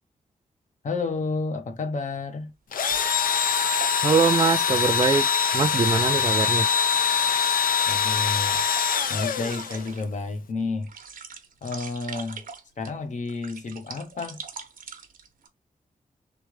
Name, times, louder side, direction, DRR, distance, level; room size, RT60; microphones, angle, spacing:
voice 1, 0.8-2.5 7.9-8.6 9.1-10.9 11.6-12.4 12.8-14.4, left 3 dB, 60° left, 1.0 m, -30 dB
sound 1, 2.2-2.3 2.9-10.2 10.6-12.9 13.3-15.5, right 6 dB, 85° right, 0.9 m, -42 dB
Engine / Drill, 2.7-10.0, left 7 dB, 80° left, 0.6 m, -23 dB
voice 2, 4.0-5.2 5.5-6.7, right 5 dB, 30° right, 0.4 m, -22 dB
3.7 x 3.3 x 3.2 m
wide cardioid pair, 140°, 14 cm